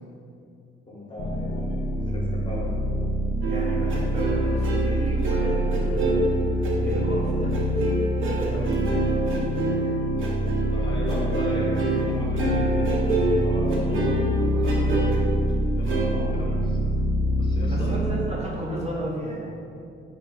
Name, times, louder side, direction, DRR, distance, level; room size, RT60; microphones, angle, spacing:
voice 1, 0.9-2.7 10.7-15.1 15.7-16.8 17.4-17.9, left 1 dB, 25° left, -4 dB, 0.7 m, -35 dB
sound 1, 1.2-18.1, equal, 70° left, 0.5 m, -26 dB
sound 2, 3.4-12.1 12.4-15.2 15.8-16.0, right 3 dB, 70° right, 0.7 m, -27 dB
voice 2, 3.5-6.2 6.8-7.6 8.2-9.1 16.1-16.3 17.7-19.5, right 1 dB, 30° right, -3 dB, 0.4 m, -33 dB
3.4 x 2.4 x 4.2 m, 2.4 s
cardioid pair, 155°, 21 cm